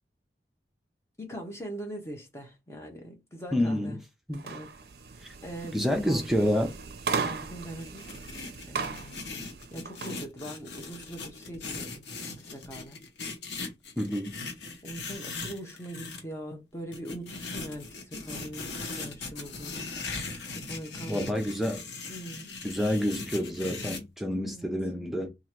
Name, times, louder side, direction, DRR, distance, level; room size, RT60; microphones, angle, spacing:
voice 1, 1.2-4.0 4.4-4.7 5.1-6.6 7.2-8.3 8.7-13.0 14.8-19.9 20.5-21.6 22.1-22.5 24.4-24.7, equal, 15° left, 0.9 m, -42 dB
voice 2, 3.5-4.0 4.3-4.4 5.7-6.7 14.0-14.3 21.1-21.8 22.6-25.3, equal, ahead, 0.5 m, -28 dB
sound 1, 4.3-10.2, right 5 dB, 60° right, 0.5 m, -37 dB
sound 2, 7.8-16.2 16.9-24.0, left 3 dB, 80° left, 0.9 m, -39 dB
3.0 x 2.5 x 4.3 m
head